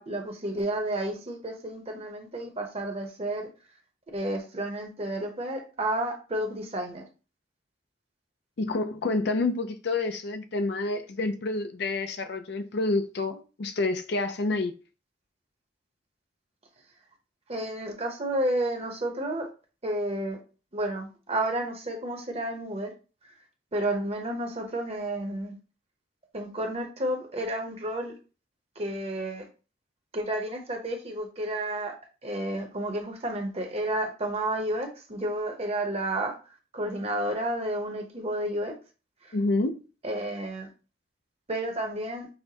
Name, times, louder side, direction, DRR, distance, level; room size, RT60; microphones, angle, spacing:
voice 1, 0.0-3.5 4.1-7.0 17.5-19.5 19.8-20.4 20.7-22.9 23.7-25.6 26.3-28.1 28.8-29.5 30.1-31.9 32.2-36.3 36.7-38.7 39.2-39.4 40.0-40.7 41.5-42.3, right 1 dB, 35° right, 0.9 m, -31 dB
voice 2, 8.6-14.7 39.3-39.8, left 2 dB, 65° left, 0.5 m, -28 dB
6.3 x 2.2 x 2.8 m
head